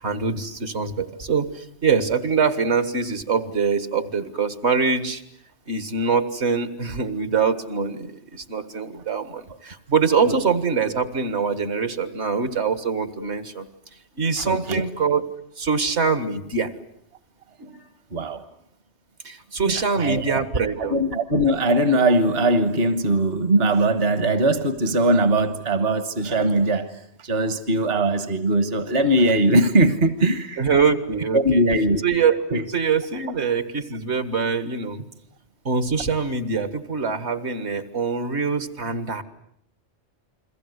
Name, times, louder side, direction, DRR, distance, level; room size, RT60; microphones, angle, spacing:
voice 1, 0.0-5.2 5.7-13.7 14.2-15.2 15.6-16.7 17.6-17.8 19.2-21.0 30.6-31.6 32.0-35.1 35.7-39.2, right 5 dB, 75° right, 11 dB, 2.1 m, -24 dB
voice 2, 14.4-14.8 18.1-18.4 19.7-20.4 20.8-26.9 27.2-30.7 31.3-32.0 32.5-32.6, right 1 dB, 60° right, 11 dB, 1.6 m, -20 dB
30.0 x 22.5 x 8.1 m, 0.71 s
omnidirectional pair, 1.1 m